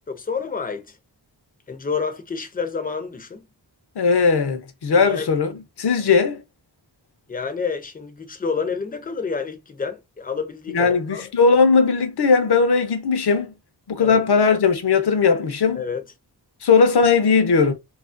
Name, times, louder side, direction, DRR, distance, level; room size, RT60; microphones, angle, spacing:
voice 1, 0.1-1.0 1.7-3.4 4.9-5.3 7.3-11.2 14.0-14.2 15.7-16.0, left 5 dB, 20° left, 0.5 m, -29 dB
voice 2, 4.0-5.5 5.8-6.4 10.7-13.5 13.9-15.8 16.6-17.7, left 5 dB, 70° left, 0.6 m, -18 dB
2.7 x 2.4 x 2.4 m
wide cardioid pair, 100°, 42 cm